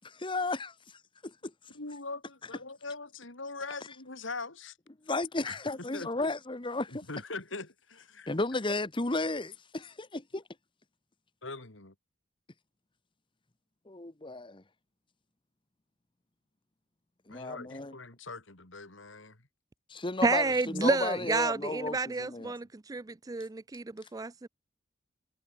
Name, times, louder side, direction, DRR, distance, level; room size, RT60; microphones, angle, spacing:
voice 1, 0.0-1.5 5.1-7.0 8.3-10.4 13.9-14.6 17.3-17.9 19.9-20.5 20.7-22.5, left 2 dB, 25° left, 1.1 m, -34 dB
voice 2, 1.7-4.8 5.4-6.1 6.9-8.3 11.4-11.9 17.3-19.4, left 3 dB, 70° left, 3.2 m, -42 dB
voice 3, 20.2-24.5, right 3 dB, 20° right, 0.4 m, -30 dB
head